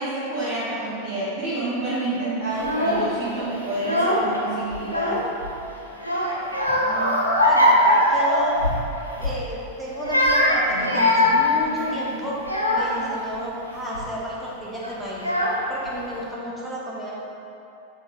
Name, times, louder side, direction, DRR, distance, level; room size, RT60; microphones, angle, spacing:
voice 1, 0.0-5.2, right 2 dB, 35° right, -15 dB, 1.2 m, -28 dB
Child speech kid speaking / Crying sobbing, 2.5-3.1 3.7-4.4 4.7-5.5 6.0-8.8 9.2-9.4 9.9-13.1 13.7-14.1 14.8-14.9 15.2-15.9, left 1 dB, 90° left, 0.5 m, -21 dB
voice 2, 6.7-7.2 7.4-8.8 9.2-12.4 12.7-15.2 15.7-17.2, equal, 5° right, -6 dB, 0.7 m, -32 dB
5.1 x 2.5 x 2.8 m, 2.8 s
figure-of-eight pair, 90°, 0 cm